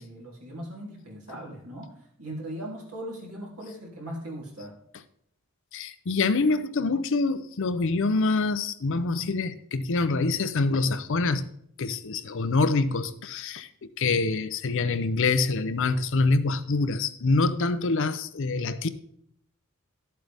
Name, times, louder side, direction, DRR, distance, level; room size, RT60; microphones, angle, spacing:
voice 1, 0.0-4.7, right 1 dB, 90° right, 3.1 m, -39 dB
voice 2, 5.7-11.5 11.8-13.7 14.0-18.9, left 3 dB, 60° left, 0.6 m, -25 dB
12.5 x 7.7 x 3.4 m
head